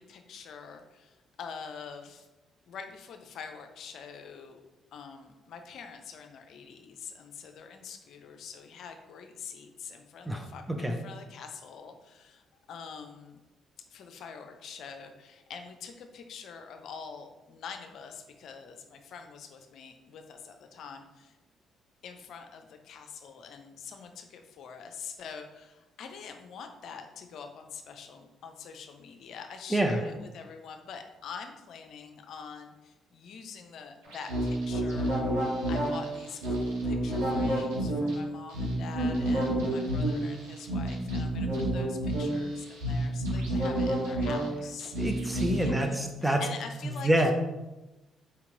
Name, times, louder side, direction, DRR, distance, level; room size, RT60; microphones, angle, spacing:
voice 1, 0.0-2.3 2.7-4.6 4.9-12.4 12.7-13.4 13.9-21.3 22.0-45.0 45.5-46.1 46.4-47.3, left 6 dB, 65° left, 5 dB, 0.4 m, -45 dB
voice 2, 10.3-11.0 29.7-30.1 45.0-46.4 46.8-47.3, right 1 dB, 10° right, 4 dB, 0.6 m, -27 dB
sound 1, 34.1-45.7, right 1 dB, 80° right, 1.4 m, -29 dB
4.4 x 2.9 x 3.7 m, 1.0 s
hypercardioid pair, 50°, 0 cm